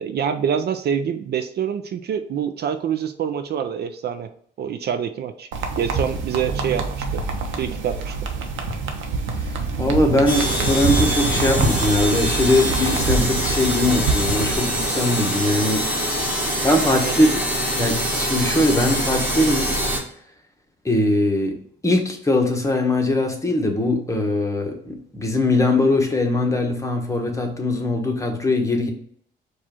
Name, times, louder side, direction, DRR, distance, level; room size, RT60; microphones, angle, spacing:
voice 1, 0.0-4.3 4.6-5.5 5.8-7.2 7.6-8.1 17.1-17.3, right 8 dB, 55° right, 8 dB, 0.4 m, -26 dB
sound 1, 5.5-14.6, right 4 dB, 75° right, 0.8 m, -26 dB
voice 2, 9.5-15.9 16.6-17.3 17.8-19.7 20.8-21.6 21.8-28.9, left 1 dB, 15° left, 3 dB, 1.0 m, -21 dB
sound 2, 10.3-20.0, equal, 10° right, 1.9 m, -24 dB
4.7 x 2.5 x 4.2 m, 0.62 s
cardioid pair, 90°, 20 cm